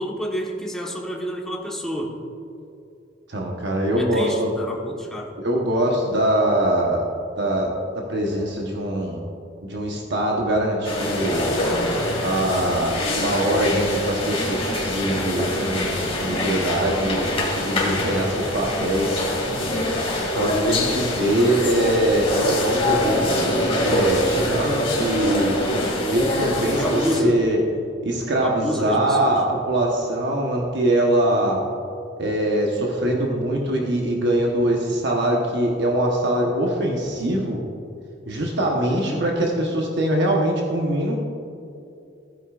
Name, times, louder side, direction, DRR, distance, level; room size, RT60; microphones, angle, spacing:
voice 1, 0.0-2.1 4.0-5.3 20.5-21.0 26.8-27.4 28.4-29.3 37.8-38.0 38.8-39.2, equal, 5° left, -2 dB, 1.3 m, -29 dB
voice 2, 3.3-4.5 5.4-7.0 7.4-9.2 9.6-11.5 12.2-19.2 20.2-27.6 28.0-31.6 32.2-37.6 38.3-41.2, right 1 dB, 65° right, 0 dB, 1.1 m, -23 dB
sound 1, 10.8-27.2, left 1 dB, 30° left, 2.1 m, -24 dB
15.5 x 9.7 x 2.5 m, 2.6 s
head